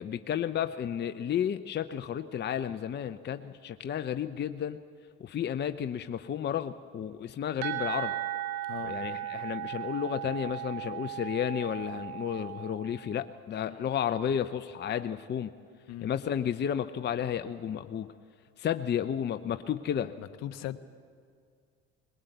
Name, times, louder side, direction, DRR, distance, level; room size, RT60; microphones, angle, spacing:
voice 1, 0.0-4.8 5.2-8.2 8.8-15.5 16.0-18.1 18.6-20.1, left 9 dB, 35° left, 9 dB, 0.7 m, -32 dB
sound 1, 7.6-13.2, right 13 dB, 90° right, 1.7 m, -36 dB
voice 2, 20.2-20.8, left 13 dB, 60° left, 12 dB, 1.0 m, -39 dB
20.5 x 18.5 x 8.0 m, 2.2 s
supercardioid pair, 85°, 30 cm